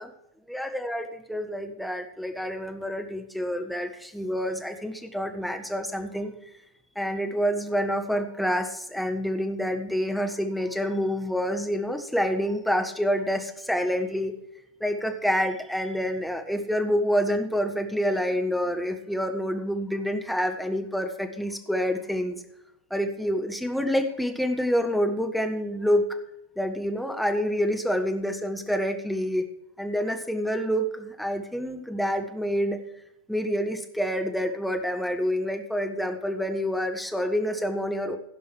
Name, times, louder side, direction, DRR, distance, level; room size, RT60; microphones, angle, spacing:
voice 1, 0.5-6.3 6.9-14.4 14.8-22.4 22.9-26.1 26.6-29.5 29.8-32.8 33.3-38.2, equal, ahead, 5 dB, 1.3 m, -27 dB
15.5 x 5.4 x 6.3 m, 0.82 s
figure-of-eight pair, 90°, 0 cm